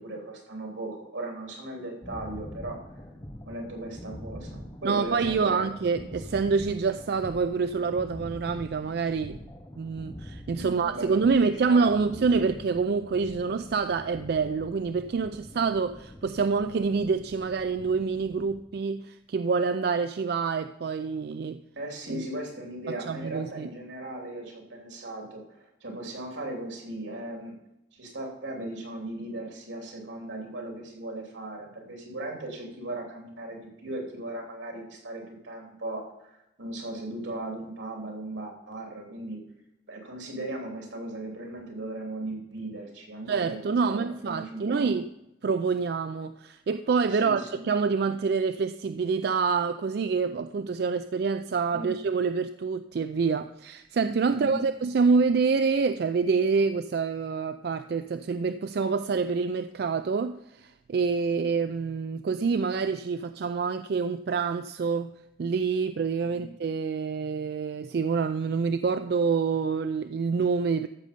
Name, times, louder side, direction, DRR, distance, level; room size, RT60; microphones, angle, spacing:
voice 1, 0.0-2.8 3.4-5.7 6.3-6.4 10.5-12.5 15.5-15.7 21.8-27.6 27.9-39.4 39.9-44.9 47.1-47.6 51.7-52.0 54.2-54.7 66.2-66.5, right 1 dB, 85° right, 1 dB, 3.0 m, -37 dB
sound 1, 2.0-18.6, equal, 20° left, 0.8 m, -44 dB
voice 2, 4.8-9.4 9.8-21.6 22.1-22.3 22.9-23.7 43.3-45.1 45.4-65.1 65.4-70.9, right 5 dB, 55° right, 10 dB, 0.3 m, -27 dB
13.5 x 6.6 x 5.2 m, 0.86 s
head